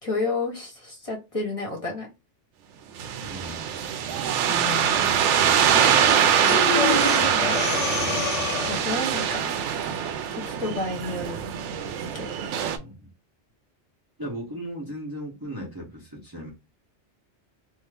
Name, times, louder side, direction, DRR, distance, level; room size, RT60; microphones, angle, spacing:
voice 1, 0.0-2.1 4.5-5.3 5.5-6.2 6.5-7.6 8.7-9.5 10.3-11.4 12.1-12.3, left 2 dB, 30° left, 1.1 m, -31 dB
sound 1, 3.0-12.8, right 8 dB, 90° right, 0.9 m, -23 dB
voice 2, 3.2-3.7 8.0-8.2 12.6-13.1 14.2-16.5, equal, 20° right, 0.9 m, -37 dB
Breathing, 6.4-9.0, left 8 dB, 85° left, 0.9 m, -28 dB
2.7 x 2.5 x 3.3 m
omnidirectional pair, 1.2 m